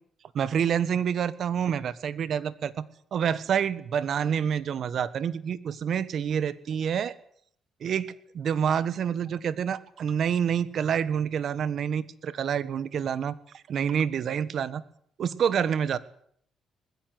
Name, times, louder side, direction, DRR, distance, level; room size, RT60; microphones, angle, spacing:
voice 1, 0.3-7.1 7.8-14.8 15.2-16.0, right 8 dB, 60° right, 16 dB, 1.5 m, -28 dB
20.5 x 15.5 x 9.5 m, 0.64 s
cardioid pair, 90°, 0 cm